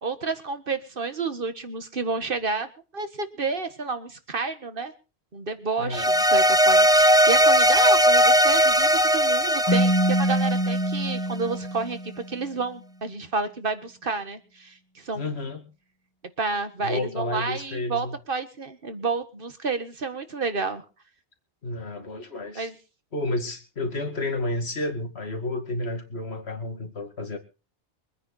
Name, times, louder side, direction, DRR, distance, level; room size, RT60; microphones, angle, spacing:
voice 1, 0.0-4.9 5.3-12.0 12.3-15.3 16.4-20.8 22.5-22.8, right 4 dB, 50° right, 9 dB, 1.8 m, -30 dB
sound 1, 5.9-11.3, equal, 5° right, 0.6 m, -19 dB
Keyboard (musical), 9.7-12.4, right 1 dB, 20° left, 2.2 m, -25 dB
voice 2, 15.1-15.6 16.8-18.2 21.6-22.7 23.1-27.4, left 2 dB, 65° left, 6 dB, 2.5 m, -31 dB
24.0 x 9.5 x 4.2 m, 0.34 s
omnidirectional pair, 1.2 m